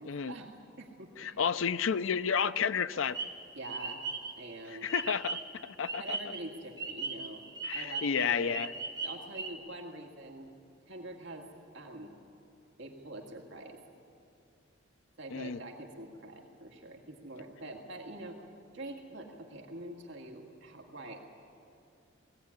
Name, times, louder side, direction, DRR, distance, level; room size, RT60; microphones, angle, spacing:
voice 1, 0.0-1.4 3.5-4.0 4.4-4.9 6.0-7.4 7.7-8.6 9.0-10.5 10.9-11.5 11.7-12.1 12.8-13.8 15.2-18.4 18.7-21.2, right 2 dB, 65° right, 1 dB, 2.0 m, -45 dB
voice 2, 1.2-3.2 4.8-6.2 7.6-8.7 15.3-15.6, left 6 dB, 80° left, 14 dB, 0.6 m, -31 dB
sound 1, 3.0-5.5 5.8-9.5, right 4 dB, 20° right, 1.7 m, -39 dB
19.5 x 16.5 x 9.7 m, 2.6 s
head